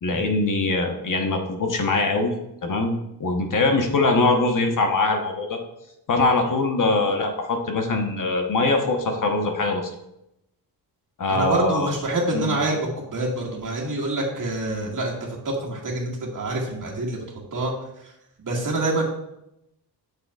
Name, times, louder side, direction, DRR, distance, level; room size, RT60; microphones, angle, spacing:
voice 1, 0.0-2.3 2.6-5.6 6.1-9.9 11.2-11.9 12.3-12.6, left 3 dB, 45° left, 4 dB, 1.1 m, -22 dB
voice 2, 11.3-17.2 17.5-18.1 18.4-19.0, right 2 dB, 45° right, -2 dB, 1.9 m, -26 dB
8.2 x 6.6 x 2.4 m, 0.85 s
cardioid pair, 100°, 42 cm